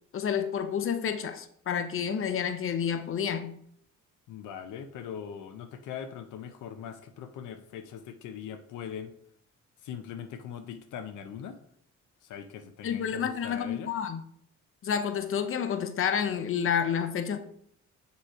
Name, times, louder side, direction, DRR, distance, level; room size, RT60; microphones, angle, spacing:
voice 1, 0.1-3.6 12.8-14.2 14.8-17.4, left 7 dB, 45° left, 9 dB, 0.7 m, -29 dB
voice 2, 4.3-9.1 9.8-11.6 12.2-13.9, left 8 dB, 80° left, 8 dB, 0.6 m, -41 dB
6.8 x 3.1 x 4.8 m, 0.68 s
cardioid pair, 90°, 30 cm